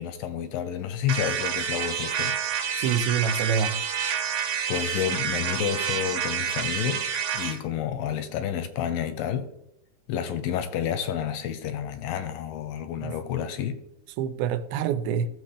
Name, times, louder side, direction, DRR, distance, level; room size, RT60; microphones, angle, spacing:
voice 1, 0.0-2.4 4.7-9.5 10.1-13.8, left 9 dB, 80° left, 2.3 m, -30 dB
sound 1, 1.1-7.6, right 8 dB, 65° right, 2.1 m, -28 dB
voice 2, 2.8-3.8 13.0-13.2 14.2-15.3, right 7 dB, 85° right, 2.5 m, -26 dB
14.0 x 7.2 x 3.3 m
omnidirectional pair, 4.4 m